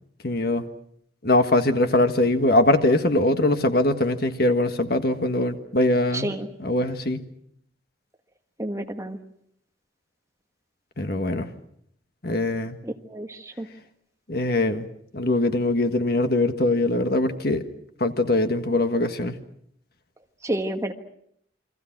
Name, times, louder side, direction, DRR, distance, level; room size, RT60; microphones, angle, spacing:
voice 1, 0.2-0.6 1.2-6.3 6.6-7.2 11.0-11.5 12.2-12.8 14.3-14.9 15.1-17.7 18.0-19.4, left 1 dB, 55° left, 8 dB, 1.6 m, -22 dB
voice 2, 6.1-6.5 8.6-9.2 12.8-13.7 20.4-20.9, right 1 dB, 15° right, 5 dB, 1.4 m, -30 dB
29.0 x 23.5 x 6.0 m, 0.69 s
head